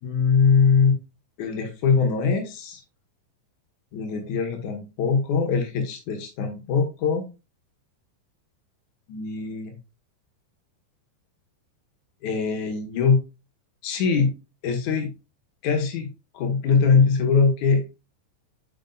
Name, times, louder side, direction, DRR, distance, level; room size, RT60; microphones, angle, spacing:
voice 1, 0.0-0.9 1.4-2.8 3.9-7.2 9.1-9.7 12.2-13.2 13.8-14.3 14.6-15.1 15.6-16.1 16.3-17.8, left 5 dB, 80° left, 4 dB, 1.7 m, -22 dB
9.9 x 5.3 x 2.3 m, 0.28 s
omnidirectional pair, 5.5 m